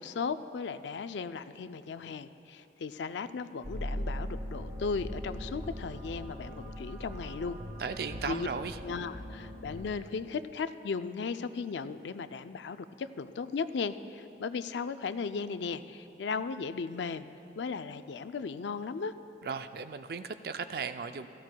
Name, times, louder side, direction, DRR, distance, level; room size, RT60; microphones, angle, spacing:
voice 1, 0.0-7.6 8.3-8.5 8.8-17.3 17.6-19.1, left 5 dB, 75° left, 12 dB, 0.4 m, -36 dB
sound 1, 3.6-9.9, equal, 25° right, 1.7 m, -40 dB
voice 2, 7.8-8.8 19.4-21.3, right 5 dB, 55° right, 10 dB, 0.4 m, -36 dB
17.5 x 15.0 x 2.2 m, 2.8 s
head